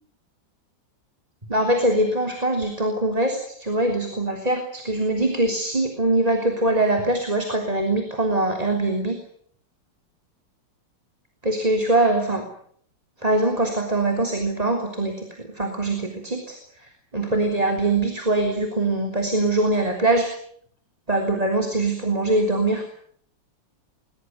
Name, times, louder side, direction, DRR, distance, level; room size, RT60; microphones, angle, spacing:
voice 1, 1.5-9.2 11.4-12.5 13.2-16.5 17.1-20.3 21.1-22.9, right 2 dB, 20° right, 3 dB, 3.6 m, -22 dB
22.0 x 21.5 x 9.5 m, 0.64 s
omnidirectional pair, 2.0 m